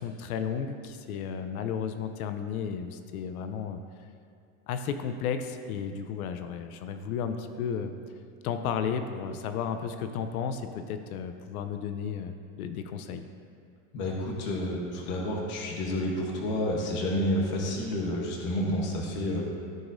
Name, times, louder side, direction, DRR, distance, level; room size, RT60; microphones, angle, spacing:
voice 1, 0.0-3.8 4.7-7.9 8.4-13.3, left 7 dB, 85° left, 8 dB, 0.7 m, -33 dB
voice 2, 13.9-19.4, left 1 dB, 25° left, -1 dB, 1.0 m, -30 dB
14.5 x 4.9 x 2.6 m, 2.3 s
supercardioid pair, 175°, 42 cm